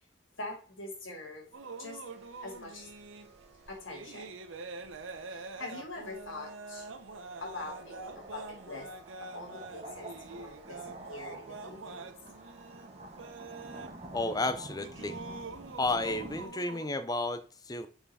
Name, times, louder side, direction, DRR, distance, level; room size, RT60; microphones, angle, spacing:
voice 1, 0.4-1.5 1.8-2.0 2.4-2.9 3.7-4.3 5.3-6.9 7.4-8.9 9.2-12.1, left 2 dB, 85° left, 2.6 m, -44 dB
sound 1, 1.5-16.9, right 3 dB, 85° right, 0.9 m, -46 dB
sound 2, 1.8-16.5, right 2 dB, 35° right, 1.3 m, -50 dB
voice 2, 14.1-15.2 15.8-17.9, left 2 dB, 20° left, 0.6 m, -32 dB
6.9 x 5.4 x 4.2 m
head